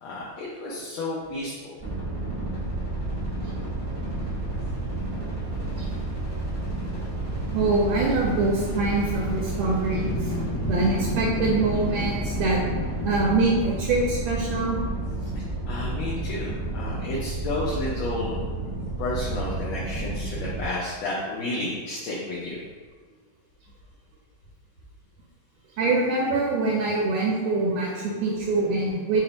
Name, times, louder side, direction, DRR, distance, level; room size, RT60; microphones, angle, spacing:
voice 1, 0.0-1.8 15.2-15.3 15.7-18.3 19.0-22.6, left 2 dB, 80° left, -6 dB, 1.5 m, -31 dB
sound 1, 1.8-20.7, right 2 dB, 40° right, 0.4 m, -31 dB
voice 2, 7.5-12.6 13.0-14.8 25.8-29.2, right 3 dB, 75° right, -3 dB, 1.4 m, -24 dB
sound 2, 8.2-9.1 10.0-13.5, left 3 dB, 65° left, 1.1 m, -33 dB
4.1 x 2.0 x 3.9 m, 1.4 s
omnidirectional pair, 2.3 m